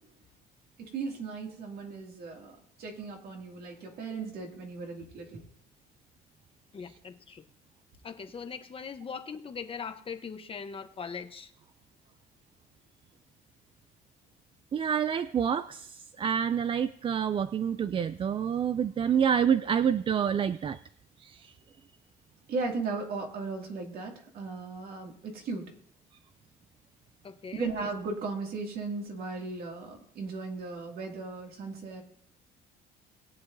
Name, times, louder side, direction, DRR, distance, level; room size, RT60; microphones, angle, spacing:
voice 1, 0.8-5.4 22.5-25.7 27.5-32.0, right 4 dB, 65° right, 1 dB, 2.4 m, -36 dB
voice 2, 6.7-7.4 8.0-11.5 27.2-27.9, left 6 dB, 35° left, 7 dB, 1.0 m, -40 dB
voice 3, 14.7-20.8 21.2-21.4, right 8 dB, 30° right, 13 dB, 0.3 m, -27 dB
20.5 x 7.9 x 2.7 m, 0.69 s
cardioid pair, 110°, 17 cm